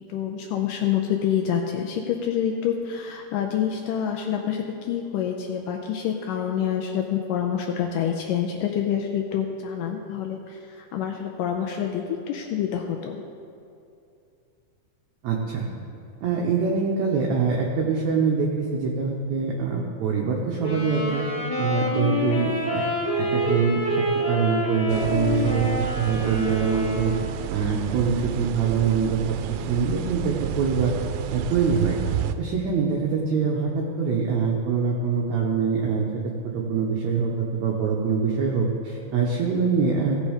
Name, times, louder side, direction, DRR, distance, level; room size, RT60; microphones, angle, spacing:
voice 1, 0.1-10.6 10.9-13.2, left 9 dB, 80° left, 2 dB, 2.1 m, -27 dB
voice 2, 15.2-15.7 16.2-21.2 21.6-22.8 23.2-25.7 26.0-27.1 27.5-29.4 29.7-31.0 31.3-32.0 32.4-36.0 36.5-40.2, right 5 dB, 70° right, -1 dB, 1.8 m, -24 dB
Wind instrument woodwind instrument, 20.6-27.4, left 1 dB, 25° left, 2.0 m, -27 dB
sound 1, 24.9-32.3, right 10 dB, 85° right, 2.4 m, -31 dB
16.0 x 6.3 x 5.1 m, 2.6 s
omnidirectional pair, 4.2 m